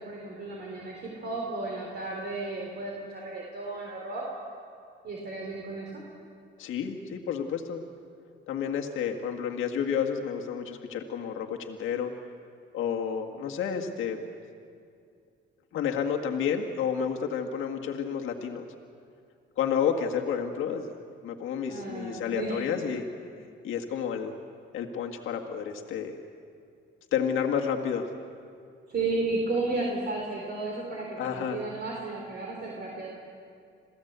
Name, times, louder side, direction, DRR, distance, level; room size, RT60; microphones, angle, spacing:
voice 1, 0.0-4.2 5.0-6.0 21.7-22.7 28.9-33.1, right 3 dB, 55° right, -1 dB, 4.0 m, -33 dB
voice 2, 6.6-7.8 8.5-12.1 12.7-14.2 15.7-18.7 19.6-21.0 21.2-23.1 23.6-24.3 24.7-26.2 27.1-28.1 31.2-31.6, left 7 dB, 85° left, 2 dB, 1.9 m, -30 dB
27.5 x 16.5 x 8.2 m, 2.4 s
cardioid pair, 90°, 20 cm